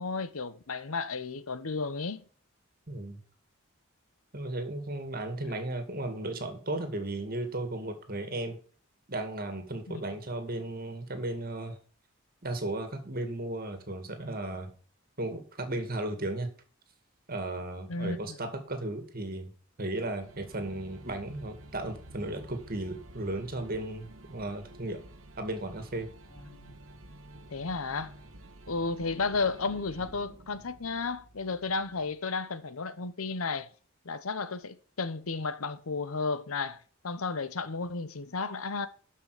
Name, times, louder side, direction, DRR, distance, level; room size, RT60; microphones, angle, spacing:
voice 1, 0.0-2.3 9.9-10.0 17.9-18.4 26.5-26.7 27.5-28.1 28.7-33.7 34.0-38.9, left 4 dB, 85° left, 0.9 m, -33 dB
voice 2, 2.9-3.2 4.3-8.6 9.1-11.8 12.4-14.7 15.2-16.5 17.3-19.5 19.8-25.0 25.4-26.1, right 2 dB, 45° right, 2.1 m, -35 dB
sound 1, 20.2-32.2, right 1 dB, 75° right, 1.2 m, -50 dB
12.5 x 5.7 x 5.0 m
head